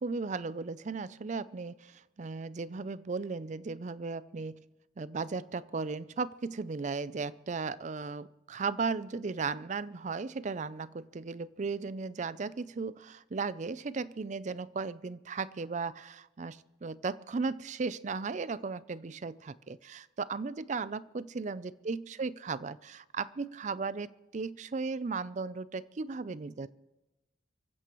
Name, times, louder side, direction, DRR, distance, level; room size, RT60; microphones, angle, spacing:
voice 1, 0.0-4.6 5.0-26.7, right 4 dB, 40° right, 17 dB, 0.4 m, -36 dB
25.0 x 15.0 x 3.1 m, 1.0 s
head